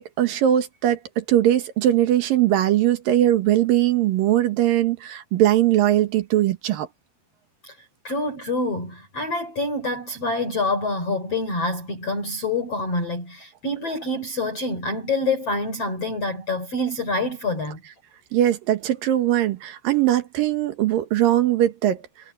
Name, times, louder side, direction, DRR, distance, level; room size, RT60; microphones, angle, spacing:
voice 1, 0.0-6.9 18.3-22.0, right 12 dB, 65° right, 2.4 m, -20 dB
voice 2, 8.0-17.8, left 2 dB, 35° left, 4.7 m, -26 dB
omnidirectional pair, 5.4 m